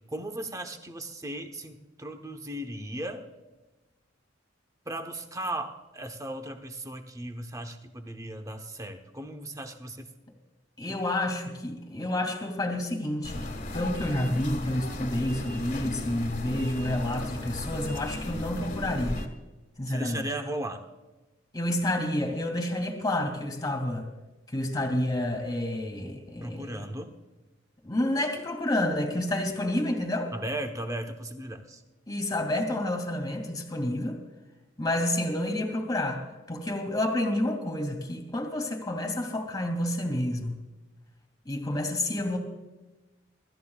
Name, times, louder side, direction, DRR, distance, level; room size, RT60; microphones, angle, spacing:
voice 1, 0.1-3.2 4.9-10.1 10.9-11.0 19.9-20.8 26.4-27.1 30.3-31.8, right 1 dB, 15° right, 5 dB, 1.0 m, -36 dB
voice 2, 10.8-19.2 19.8-20.2 21.5-24.1 24.5-26.8 27.8-30.3 32.1-34.2 34.8-40.6 41.4-42.4, left 1 dB, 20° left, 4 dB, 2.3 m, -29 dB
sound 1, 13.2-19.3, left 1 dB, 40° left, 1.6 m, -35 dB
27.0 x 13.5 x 2.4 m, 1.1 s
head